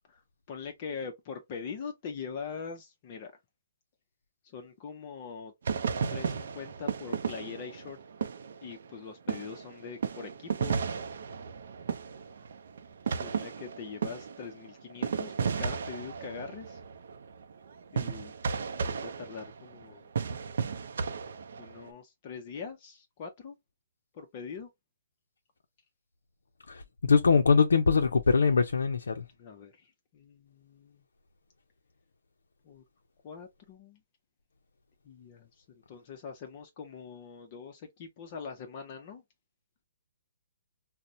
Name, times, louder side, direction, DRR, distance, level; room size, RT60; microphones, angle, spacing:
voice 1, 0.1-3.3 4.4-5.5 6.1-8.0 8.6-10.8 13.2-16.8 17.9-18.3 18.8-20.1 21.6-23.6 24.1-24.7 29.4-31.0 32.6-32.8 33.2-34.0 35.0-39.2, left 6 dB, 35° left, 0.6 m, -43 dB
sound 1, 5.6-9.0 9.3-21.9, right 6 dB, 65° right, 0.4 m, -34 dB
voice 2, 26.7-29.2, left 5 dB, 85° left, 0.4 m, -23 dB
4.1 x 2.0 x 2.5 m
hypercardioid pair, 150°, 0 cm